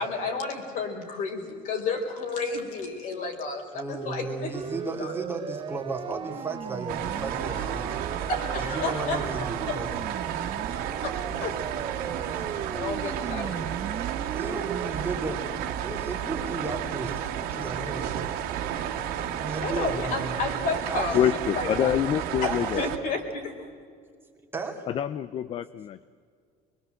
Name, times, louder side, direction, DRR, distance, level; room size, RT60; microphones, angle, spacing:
voice 1, 0.0-5.1 7.5-7.7 8.3-9.3 9.7-9.8 11.0-11.6 12.7-13.8 19.6-21.2 21.6-22.0 22.4-23.5, left 3 dB, 55° left, 4 dB, 4.4 m, -32 dB
voice 2, 3.7-8.0 8.7-10.1 12.3-13.7 14.3-15.4 15.7-18.9 19.3-20.4 20.9-21.3 22.4-22.9 24.5-24.8 25.3-25.4, right 3 dB, 15° right, 2 dB, 2.7 m, -35 dB
Siren, 4.5-14.9, right 8 dB, 30° right, 0.9 m, -37 dB
sound 1, 6.9-23.0, right 10 dB, 65° right, 1.9 m, -32 dB
voice 3, 21.1-22.8 24.9-26.0, left 10 dB, 35° left, 15 dB, 0.5 m, -26 dB
24.5 x 22.0 x 7.9 m, 2.1 s
cardioid pair, 160°, 16 cm